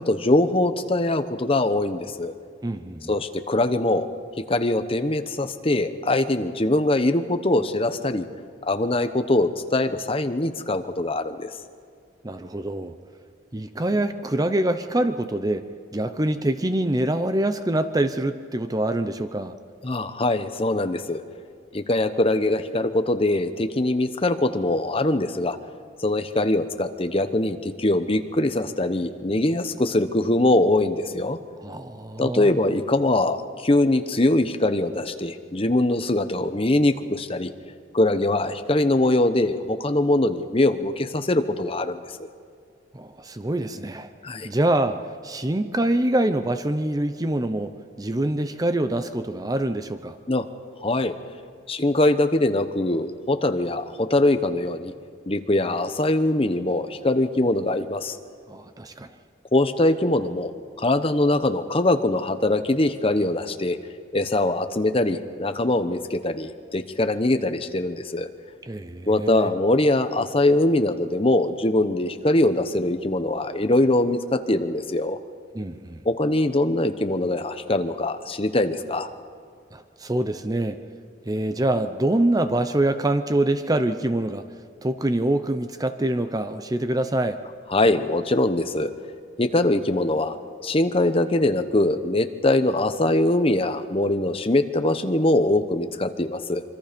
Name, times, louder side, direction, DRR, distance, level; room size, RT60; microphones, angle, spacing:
voice 1, 0.0-2.3 3.1-4.1 4.5-8.2 8.7-11.5 19.8-21.2 21.7-25.6 26.0-31.4 32.2-37.5 37.9-42.3 44.2-44.5 50.3-50.4 50.8-51.1 51.7-54.9 55.3-58.2 59.5-60.5 60.8-63.8 64.1-68.3 69.1-75.2 76.0-79.1 87.7-88.9 89.4-90.4 90.6-96.6, left 2 dB, 30° left, 9 dB, 1.0 m, -22 dB
voice 2, 2.6-3.1 12.2-12.9 13.5-15.7 15.9-19.5 31.6-32.5 42.9-44.1 44.4-50.2 58.5-59.1 68.6-69.5 75.5-76.0 79.7-80.8 81.3-84.5 84.8-87.4, right 1 dB, 20° right, 10 dB, 0.7 m, -25 dB
26.0 x 24.5 x 5.2 m, 2.1 s
head